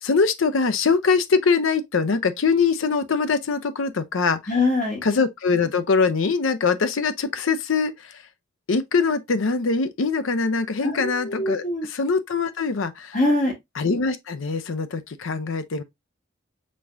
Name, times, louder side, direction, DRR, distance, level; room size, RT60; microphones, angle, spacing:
voice 1, 0.0-4.4 5.0-8.2 8.7-13.2 13.8-15.8, left 4 dB, 80° left, 0.6 m, -23 dB
voice 2, 4.5-5.0 10.8-11.9 13.1-13.5, left 2 dB, 35° left, 2.0 m, -23 dB
5.2 x 3.5 x 2.5 m
head